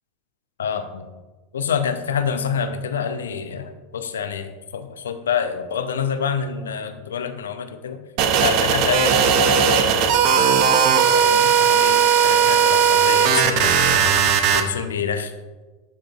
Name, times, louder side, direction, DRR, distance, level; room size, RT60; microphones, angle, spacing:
voice 1, 0.6-1.1 1.5-8.0 8.4-10.6 11.1-13.9 14.5-15.3, left 7 dB, 75° left, 9 dB, 0.5 m, -27 dB
sound 1, 8.2-14.6, right 7 dB, 55° right, 0.6 m, -17 dB
11.0 x 3.7 x 2.4 m, 1.2 s
figure-of-eight pair, 85°, 0 cm